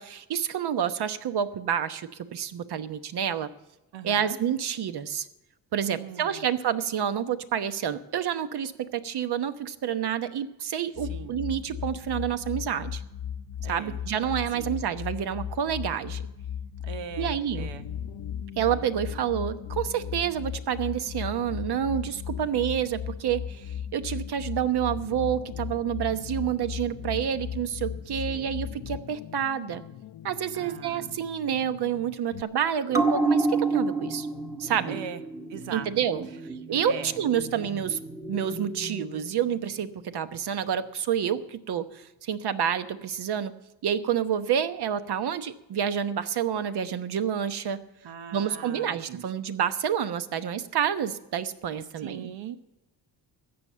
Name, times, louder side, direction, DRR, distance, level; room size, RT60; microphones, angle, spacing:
voice 1, 0.0-3.5 4.0-5.3 5.7-13.0 13.7-16.2 17.2-17.7 18.6-29.8 30.2-34.3 34.6-35.0 35.7-36.3 36.7-38.0 38.3-43.5 43.8-47.8 48.3-52.3, right 9 dB, 60° right, 10 dB, 1.1 m, -28 dB
voice 2, 3.9-4.4 5.7-6.4 11.0-11.4 13.6-14.0 14.5-14.8 16.8-17.9 28.3-28.6 30.5-31.1 34.8-35.2 35.5-35.9 36.8-37.1 48.0-49.3 52.0-52.6, right 8 dB, 90° right, 10 dB, 1.1 m, -40 dB
sound 1, 11.0-29.0, left 8 dB, 45° left, 0.5 m, -36 dB
sound 2, 17.6-32.4, left 10 dB, 75° left, 0.8 m, -47 dB
sound 3, 32.9-39.8 40.2-40.3, right 3 dB, 5° right, 1.1 m, -30 dB
14.0 x 8.8 x 6.7 m, 0.95 s
cardioid pair, 110°, 43 cm